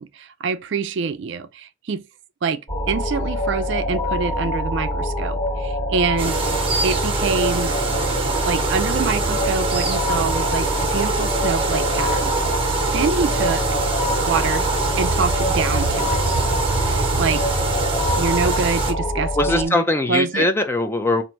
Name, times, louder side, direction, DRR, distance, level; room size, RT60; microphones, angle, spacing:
voice 1, 0.0-2.0 2.4-2.6 2.9-6.4 6.8-7.8 8.5-12.3 12.9-13.6 14.3-14.7 15.0-16.2 16.8-17.4 18.2-19.8 20.1-20.5, right 5 dB, 60° right, 0.4 m, -25 dB
sound 1, 2.7-19.6, left 1 dB, 35° left, 1.7 m, -25 dB
sound 2, 6.2-18.9, right 4 dB, 25° right, 1.0 m, -24 dB
voice 2, 19.4-21.2, left 2 dB, 10° left, 0.4 m, -20 dB
4.5 x 2.5 x 3.0 m
head